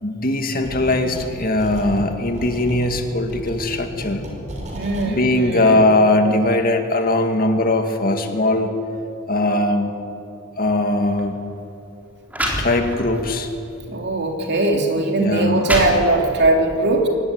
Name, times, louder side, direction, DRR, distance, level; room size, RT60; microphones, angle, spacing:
voice 1, 0.0-4.2 5.1-8.7 9.3-9.9 10.6-11.4 12.5-13.5 15.2-15.6, left 2 dB, 45° left, 5 dB, 2.2 m, -20 dB
sound 1, 0.6-1.3 1.6-5.1, equal, 35° right, 4.7 m, -33 dB
voice 2, 4.7-5.8 13.9-17.1, right 2 dB, 55° right, 2 dB, 3.0 m, -20 dB
sound 2, 11.0-11.2 12.0-12.1 12.3-13.2 13.8-13.9 14.7-14.8 15.3-16.5, equal, 10° right, 3.9 m, -26 dB
22.5 x 18.0 x 9.6 m, 2.7 s
head